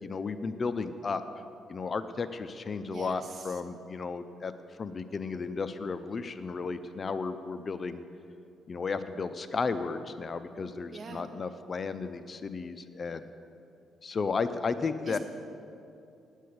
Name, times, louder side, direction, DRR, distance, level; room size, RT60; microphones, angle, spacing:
voice 1, 0.0-1.2 1.7-4.5 4.8-8.0 8.7-13.3 14.0-15.2, left 4 dB, 40° left, 11 dB, 0.5 m, -34 dB
voice 2, 2.9-3.5 10.9-11.3 15.1-15.2, right 4 dB, 45° right, 4 dB, 1.3 m, -42 dB
9.4 x 8.2 x 7.8 m, 2.6 s
cardioid pair, 90°, 0 cm